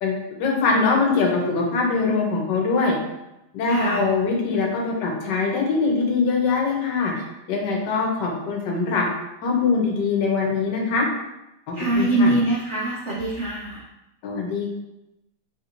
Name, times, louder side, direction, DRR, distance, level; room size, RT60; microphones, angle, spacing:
voice 1, 0.0-3.0 3.5-9.1 9.4-11.1 11.7-12.3 14.2-14.8, left 4 dB, 75° left, 0 dB, 1.3 m, -23 dB
voice 2, 3.7-4.0 11.7-13.8, right 2 dB, 85° right, -5 dB, 0.6 m, -23 dB
3.5 x 2.6 x 2.8 m, 0.91 s
omnidirectional pair, 2.0 m